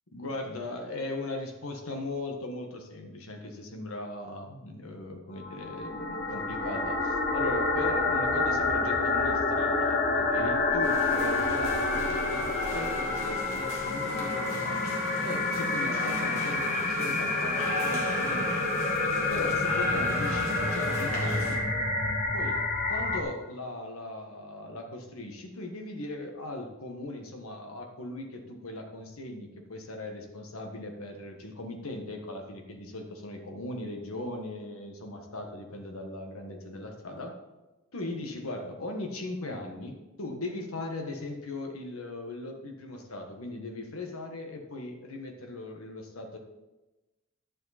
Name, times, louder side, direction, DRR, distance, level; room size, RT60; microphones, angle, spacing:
voice 1, 0.1-18.7 19.3-21.6 22.3-37.3 37.9-46.4, left 2 dB, 85° left, 3 dB, 1.5 m, -38 dB
sound 1, 5.4-23.2, left 3 dB, 40° left, 1.2 m, -28 dB
sound 2, 10.8-21.6, left 1 dB, 70° left, 2.6 m, -38 dB
11.0 x 7.4 x 4.2 m, 1.1 s
head